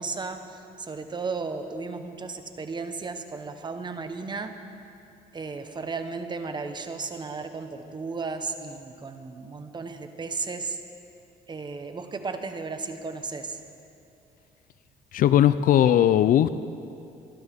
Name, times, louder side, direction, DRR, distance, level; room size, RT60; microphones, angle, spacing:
voice 1, 0.0-4.6 5.3-10.8 11.5-13.6, right 4 dB, 25° right, 7 dB, 1.1 m, -34 dB
voice 2, 15.1-16.5, left 11 dB, 55° left, 14 dB, 0.4 m, -18 dB
24.0 x 12.5 x 3.6 m, 2.6 s
cardioid pair, 110°, 17 cm